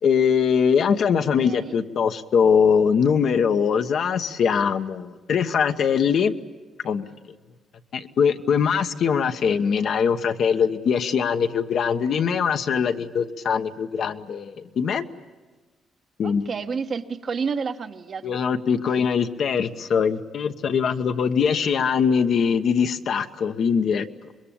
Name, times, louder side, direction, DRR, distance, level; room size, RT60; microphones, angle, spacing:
voice 1, 0.0-6.3 6.8-7.1 7.9-15.0 16.2-16.5 18.2-24.1, left 6 dB, 65° left, 7 dB, 1.1 m, -22 dB
voice 2, 1.4-1.7 16.2-18.4 18.8-19.0, right 5 dB, 50° right, 7 dB, 1.2 m, -30 dB
25.5 x 21.5 x 8.8 m, 1.3 s
cardioid pair, 90°, 0 cm